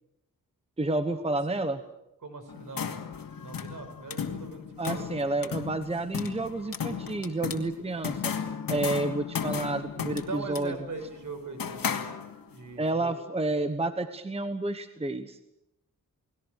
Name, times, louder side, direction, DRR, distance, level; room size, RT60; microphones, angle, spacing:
voice 1, 0.8-1.8 4.8-8.3 8.7-10.8 12.8-15.4, right 2 dB, 20° right, 9 dB, 1.1 m, -30 dB
voice 2, 2.2-3.0 3.4-5.1 10.3-12.1 12.5-13.1, right 3 dB, 65° right, 7 dB, 5.6 m, -40 dB
sound 1, 2.5-12.6, left 7 dB, 80° left, 2.4 m, -35 dB
30.0 x 20.0 x 6.6 m, 0.85 s
wide cardioid pair, 175°, 34 cm